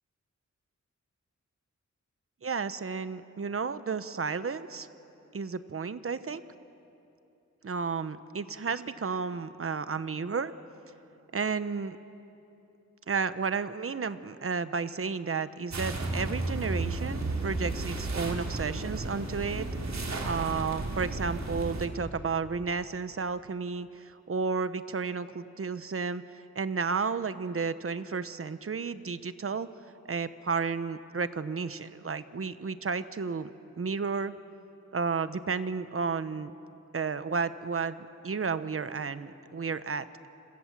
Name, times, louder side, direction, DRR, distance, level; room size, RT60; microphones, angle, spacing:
voice 1, 2.4-4.9 5.3-6.4 7.6-10.5 11.3-12.0 13.1-19.7 20.2-26.2 26.5-29.7 30.1-33.5 33.8-34.3 34.9-36.5 36.9-40.1, right 5 dB, 50° right, 13 dB, 1.0 m, -32 dB
sound 1, 15.7-21.9, right 2 dB, 65° right, 3.5 m, -33 dB
29.5 x 26.5 x 7.5 m, 2.9 s
wide cardioid pair, 110°, 29 cm